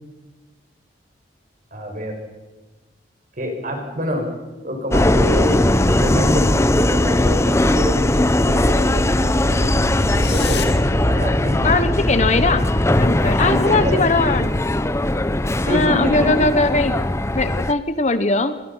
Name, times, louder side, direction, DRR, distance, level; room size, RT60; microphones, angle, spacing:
voice 1, 1.7-2.1 3.4-4.2 4.6-5.7 5.9-10.7 11.1-11.7 13.4-14.0 15.6-16.3, left 1 dB, 50° right, 3 dB, 6.0 m, -26 dB
Subway metro underground, 4.9-17.7, left 1 dB, 15° left, 0.7 m, -19 dB
sound 1, 7.8-13.3, left 1 dB, 65° left, 2.3 m, -29 dB
voice 2, 11.6-14.6 15.6-17.1 17.3-18.6, left 3 dB, 40° left, 11 dB, 1.2 m, -20 dB
27.0 x 22.0 x 5.8 m, 1.2 s
head